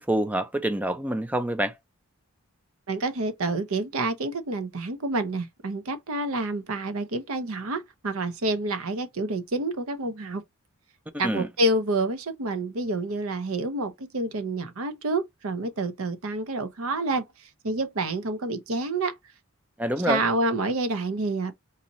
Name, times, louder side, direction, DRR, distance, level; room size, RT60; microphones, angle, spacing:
voice 1, 0.0-1.7 11.2-11.5 19.8-20.2, right 1 dB, 5° right, 0.3 m, -26 dB
voice 2, 2.9-10.4 11.2-17.3 17.6-19.1 20.1-21.5, right 2 dB, 75° right, 0.7 m, -28 dB
4.0 x 2.6 x 2.9 m
head